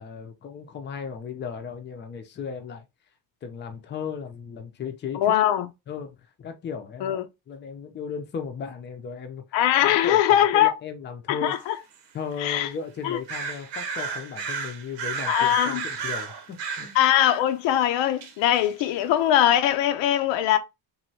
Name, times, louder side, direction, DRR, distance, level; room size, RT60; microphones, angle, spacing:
voice 1, 0.0-2.8 3.4-5.3 5.9-7.1 7.5-11.5 12.1-17.0, left 6 dB, 25° left, 0.5 m, -36 dB
voice 2, 5.1-5.7 7.0-7.3 9.5-10.7 11.3-11.8 12.4-12.7 13.0-13.2 15.3-15.8 16.9-20.6, left 11 dB, 85° left, 0.6 m, -21 dB
sound 1, 11.5-11.6 11.9-12.0 12.5-12.6 13.3-17.1 18.2-18.9, right 5 dB, 75° right, 0.9 m, -32 dB
3.1 x 2.6 x 2.7 m
cardioid pair, 140°, 43 cm